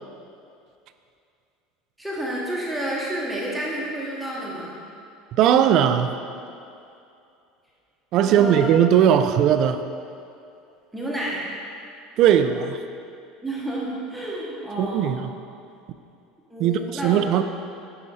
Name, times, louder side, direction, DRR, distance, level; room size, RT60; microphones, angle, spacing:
voice 1, 2.0-4.8 8.2-8.7 10.9-11.5 13.4-15.2 16.5-17.2, right 1 dB, 5° right, -5 dB, 0.9 m, -30 dB
voice 2, 5.4-6.1 8.1-9.8 12.2-12.8 14.8-15.3 16.6-17.4, right 9 dB, 40° right, 9 dB, 0.3 m, -18 dB
9.7 x 4.9 x 4.1 m, 2.5 s
cardioid pair, 175°, 0 cm